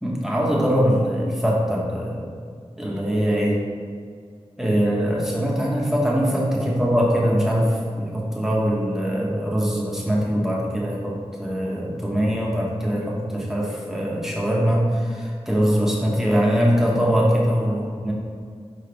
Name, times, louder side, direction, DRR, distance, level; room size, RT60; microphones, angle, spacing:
voice 1, 0.0-2.3 2.8-3.6 4.6-11.1 11.4-18.1, equal, 5° right, -5 dB, 1.3 m, -22 dB
6.1 x 4.5 x 3.4 m, 2.1 s
wide cardioid pair, 70°, 11 cm